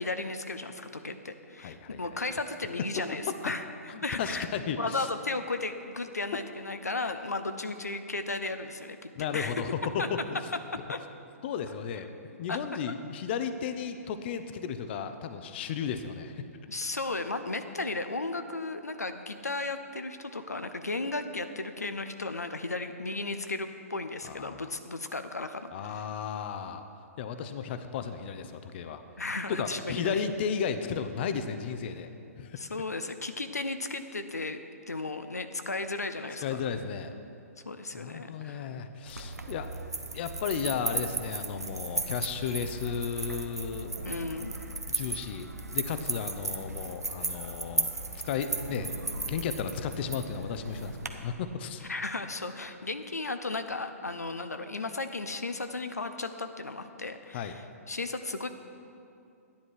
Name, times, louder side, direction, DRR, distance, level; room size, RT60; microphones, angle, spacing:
voice 1, 0.0-3.6 4.0-4.5 4.8-9.5 10.0-10.1 10.9-11.0 12.5-12.6 16.7-26.0 29.2-30.2 32.6-34.6 34.9-36.6 37.6-38.7 44.0-44.7 51.8-57.6 57.9-58.5, left 3 dB, 90° left, 8 dB, 0.7 m, -35 dB
voice 2, 1.6-2.0 3.9-5.1 9.1-10.4 11.4-16.5 24.3-24.6 25.7-26.8 27.2-29.0 29.5-32.1 32.4-32.6 36.4-37.1 37.9-39.8 40.1-43.9 44.9-47.9 48.2-51.8 57.3-57.6, left 7 dB, 45° left, 10 dB, 0.7 m, -34 dB
sound 1, 39.1-51.1, right 3 dB, 90° right, 1.0 m, -36 dB
12.0 x 10.5 x 4.7 m, 2.5 s
figure-of-eight pair, 125°, 8 cm